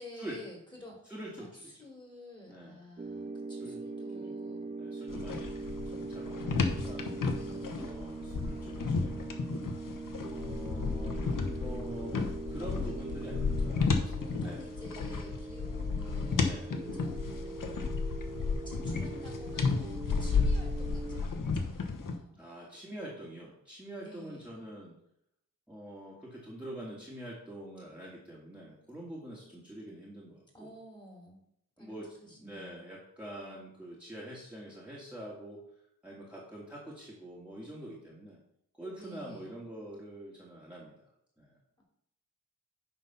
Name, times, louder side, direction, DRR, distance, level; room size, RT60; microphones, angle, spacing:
voice 1, 0.0-1.0 1.4-1.5 1.8-4.7 7.3-8.0 12.8-13.2 13.6-17.7 18.6-22.4 24.0-24.5 30.5-31.4 31.8-32.8 33.4-33.6 39.0-39.5, left 1 dB, 15° left, -1 dB, 2.9 m, -51 dB
voice 2, 1.0-1.9 2.5-2.8 3.5-3.9 4.1-5.5 5.9-7.1 7.8-9.7 10.3-14.6 16.4-16.7 20.3-20.6 22.4-25.0 25.7-30.7 31.8-35.6 36.0-38.4 38.7-41.0 41.4-41.5, right 1 dB, 5° right, -6 dB, 2.1 m, -45 dB
sound 1, 3.0-21.2, right 3 dB, 20° right, 0.4 m, -42 dB
sound 2, 5.1-22.2, left 4 dB, 65° left, 1.1 m, -33 dB
9.4 x 4.0 x 5.7 m, 0.74 s
wide cardioid pair, 105°, 34 cm